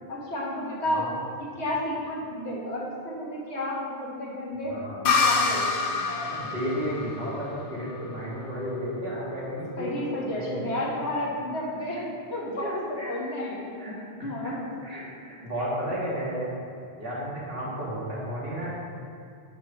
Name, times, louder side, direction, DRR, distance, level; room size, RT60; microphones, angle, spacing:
voice 1, 0.1-1.1 1.4-4.7 5.2-6.3 9.8-12.0 12.3-13.7 14.2-14.6, left 1 dB, 85° left, -4 dB, 1.7 m, -31 dB
voice 2, 4.7-5.0 6.2-10.0 10.4-10.7 12.6-13.1 13.8-13.9 14.4-14.5 14.8-16.5 17.0-18.7, equal, 60° right, -7 dB, 2.1 m, -33 dB
sound 1, 5.0-8.6, left 4 dB, 60° left, 0.8 m, -27 dB
6.2 x 6.0 x 5.7 m, 2.4 s
omnidirectional pair, 1.1 m